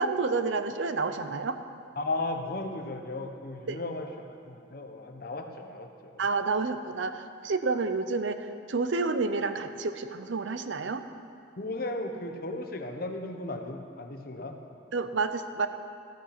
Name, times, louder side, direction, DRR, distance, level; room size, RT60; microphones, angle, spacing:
voice 1, 0.0-1.6 3.7-3.8 6.2-11.0 14.9-15.7, right 4 dB, 70° right, 10 dB, 0.6 m, -29 dB
voice 2, 2.0-6.2 11.6-14.6, left 2 dB, 50° left, 5 dB, 0.9 m, -35 dB
13.5 x 8.3 x 5.9 m, 2.4 s
head